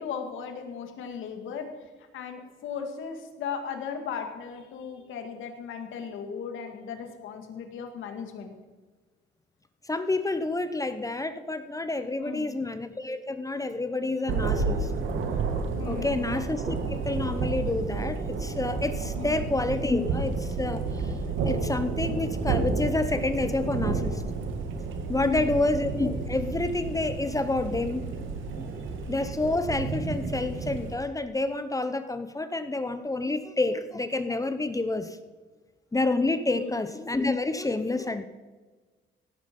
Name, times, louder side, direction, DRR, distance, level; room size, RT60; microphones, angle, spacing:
voice 1, 0.0-1.7 2.1-8.5 12.2-12.6 15.8-16.2 19.1-19.4 25.1-25.5 36.5-36.7, left 6 dB, 85° left, 5 dB, 2.2 m, -37 dB
voice 2, 9.9-14.9 15.9-21.1 21.4-24.2 25.1-28.1 29.1-35.2 35.9-38.2, left 2 dB, 15° left, 11 dB, 0.9 m, -28 dB
Thunder, 14.3-30.9, right 4 dB, 80° right, 1.9 m, -31 dB
17.0 x 9.6 x 5.4 m, 1.3 s
cardioid pair, 90°, 20 cm